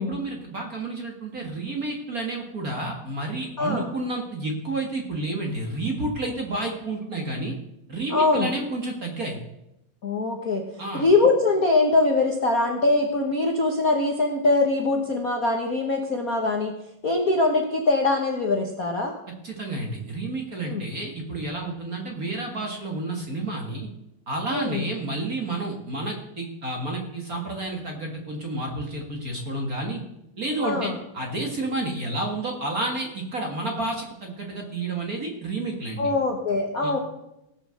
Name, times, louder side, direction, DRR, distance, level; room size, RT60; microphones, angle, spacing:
voice 1, 0.0-7.5 7.9-9.4 10.8-11.0 19.4-23.9 24.3-30.0 30.4-36.1 36.8-36.9, right 2 dB, 35° right, 1 dB, 1.5 m, -30 dB
voice 2, 3.6-3.9 8.1-8.5 10.0-10.6 10.9-16.7 17.0-19.1 20.7-20.9 24.5-24.8 30.6-31.0 36.0-37.0, left 3 dB, 85° left, 1 dB, 0.7 m, -22 dB
16.5 x 7.6 x 6.4 m, 0.85 s
omnidirectional pair, 3.8 m